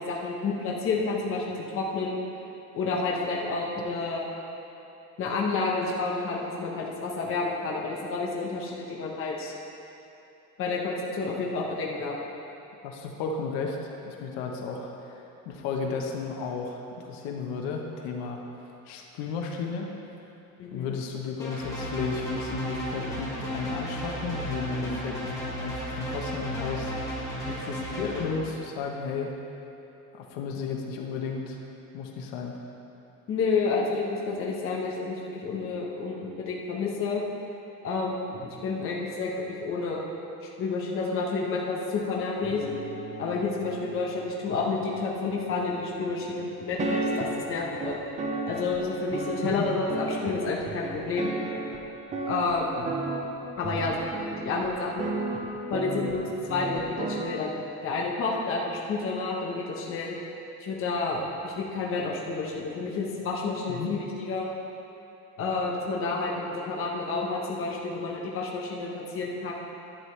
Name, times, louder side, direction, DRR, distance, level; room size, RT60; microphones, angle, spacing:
voice 1, 0.0-2.2 2.7-4.3 5.2-9.5 10.6-12.1 20.6-20.8 33.3-37.2 37.8-39.3 39.6-40.1 40.6-42.6 43.2-48.0 48.5-51.3 52.3-52.8 53.6-55.2 55.7-60.2 60.6-64.5 65.4-69.5, left 3 dB, 40° left, -2 dB, 1.2 m, -30 dB
voice 2, 12.8-13.8 14.0-18.4 18.9-19.9 20.7-26.9 27.5-29.3 30.1-31.6 31.9-32.5 49.4-49.7 63.7-63.9, left 5 dB, 90° left, 1 dB, 1.1 m, -33 dB
sound 1, 21.4-28.3, equal, 10° left, 2.1 m, -34 dB
sound 2, 42.4-46.0 46.8-57.2, right 2 dB, 20° right, 0.6 m, -34 dB
11.5 x 9.2 x 3.3 m, 2.9 s
cardioid pair, 175°, 35 cm